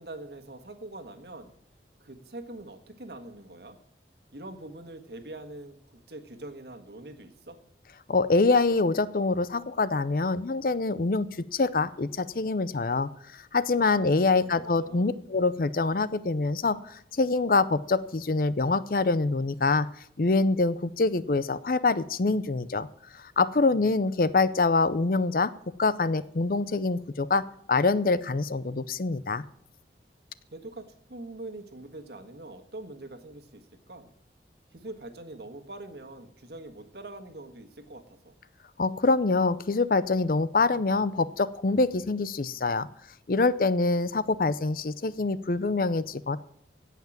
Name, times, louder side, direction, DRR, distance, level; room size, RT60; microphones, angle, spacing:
voice 1, 0.0-1.5 2.0-3.8 4.3-7.6 13.8-15.1 30.5-34.1 34.7-38.3, right 2 dB, 65° right, 6 dB, 1.5 m, -44 dB
voice 2, 8.1-11.3 11.5-19.9 20.2-22.9 23.1-25.5 25.8-27.4 27.7-29.4 38.8-42.9 43.3-46.4, left 3 dB, 50° left, 16 dB, 0.5 m, -25 dB
16.5 x 5.8 x 7.3 m, 0.73 s
head